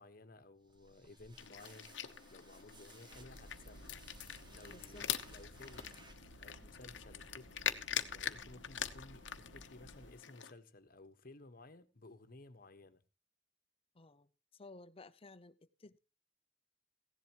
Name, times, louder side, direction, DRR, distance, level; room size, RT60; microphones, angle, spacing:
voice 1, 0.0-2.0 2.3-4.0 4.5-6.0 6.4-7.7 8.1-13.0, left 2 dB, 50° left, 1.3 m, -56 dB
sound 1, 0.6-6.6, right 2 dB, 25° right, 2.0 m, -61 dB
sound 2, 1.4-10.5, left 9 dB, 85° left, 1.0 m, -43 dB
sound 3, 3.1-10.1, right 1 dB, 70° right, 1.5 m, -57 dB
voice 2, 4.7-5.1 13.9-16.0, left 3 dB, 30° left, 0.8 m, -56 dB
16.5 x 11.0 x 3.0 m
head